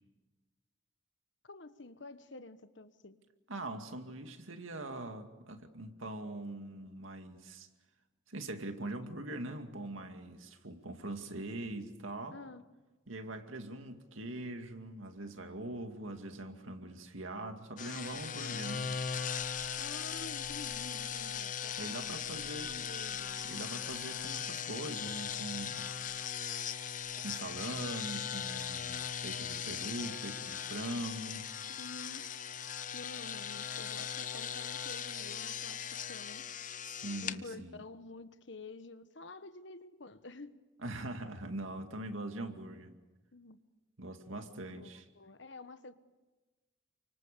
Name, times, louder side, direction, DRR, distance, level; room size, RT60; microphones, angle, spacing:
voice 1, 1.4-3.2 12.3-12.6 19.8-23.4 31.7-32.3 32.9-36.5 37.2-40.6 43.3-43.6 44.6-45.9, left 2 dB, 65° left, 11 dB, 1.3 m, -49 dB
voice 2, 3.5-7.7 8.3-12.4 13.1-18.9 21.8-22.7 23.4-25.8 27.2-31.5 36.9-37.8 40.8-42.9 44.0-45.0, right 1 dB, 85° right, 6 dB, 2.3 m, -42 dB
sound 1, 17.8-37.4, left 8 dB, 40° left, 0.8 m, -39 dB
29.5 x 25.0 x 6.9 m, 1.2 s
head